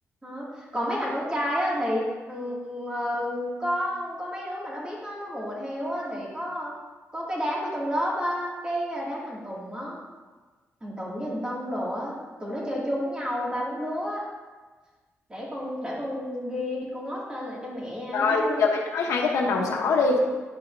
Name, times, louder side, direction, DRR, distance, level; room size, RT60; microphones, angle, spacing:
voice 1, 0.2-6.7 7.1-10.0 10.8-14.2 15.3-18.7, equal, 15° right, -5 dB, 2.3 m, -31 dB
voice 2, 18.1-20.2, left 4 dB, 85° left, 0 dB, 1.0 m, -23 dB
10.5 x 5.5 x 2.7 m, 1.3 s
cardioid pair, 90°, 5 cm